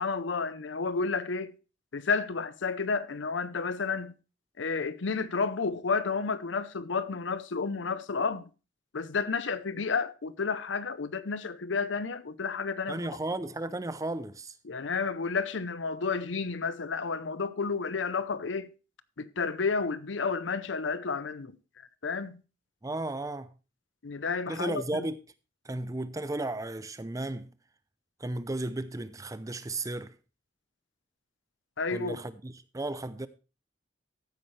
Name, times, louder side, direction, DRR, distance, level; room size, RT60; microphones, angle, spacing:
voice 1, 0.0-1.5 1.9-4.1 4.6-8.5 8.9-13.1 14.6-18.7 19.2-21.5 22.0-22.4 24.0-25.1 31.8-32.2, left 4 dB, 90° left, 0.7 m, -31 dB
voice 2, 12.9-14.5 22.8-23.5 24.5-25.2 25.6-27.5 28.2-30.1 31.9-33.3, right 2 dB, 20° right, 0.5 m, -34 dB
14.5 x 8.7 x 3.2 m
head